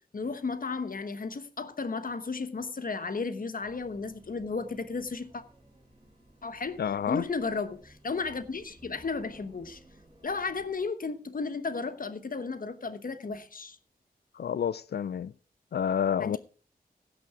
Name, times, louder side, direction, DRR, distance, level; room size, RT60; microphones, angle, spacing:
voice 1, 0.1-5.4 6.4-6.8 7.1-9.8 10.2-13.8 16.2-16.4, left 4 dB, 60° left, 1.1 m, -34 dB
sound 1, 3.6-10.8, right 1 dB, 30° right, 3.3 m, -57 dB
voice 2, 6.8-7.2 14.4-15.3 15.7-16.4, left 8 dB, 85° left, 0.4 m, -29 dB
16.5 x 6.2 x 4.9 m
wide cardioid pair, 85°, 16 cm